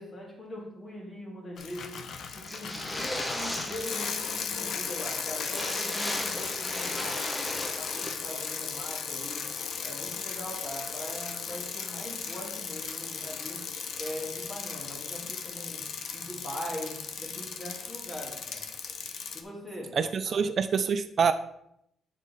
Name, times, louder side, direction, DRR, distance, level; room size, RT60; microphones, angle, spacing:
voice 1, 0.0-2.0 2.3-9.5 9.8-13.7 14.0-15.9 16.1-18.7 19.3-20.0 20.2-20.4, left 1 dB, 30° left, -1 dB, 1.9 m, -41 dB
Bicycle, 1.6-19.4, left 6 dB, 60° left, 0.7 m, -36 dB
sound 1, 2.5-4.4 4.7-4.8 5.0-5.1 5.4-8.1, left 1 dB, 10° left, 0.9 m, -36 dB
voice 2, 19.9-21.3, right 6 dB, 45° right, 10 dB, 0.4 m, -26 dB
8.1 x 3.6 x 4.1 m, 0.75 s
cardioid pair, 110°, 0 cm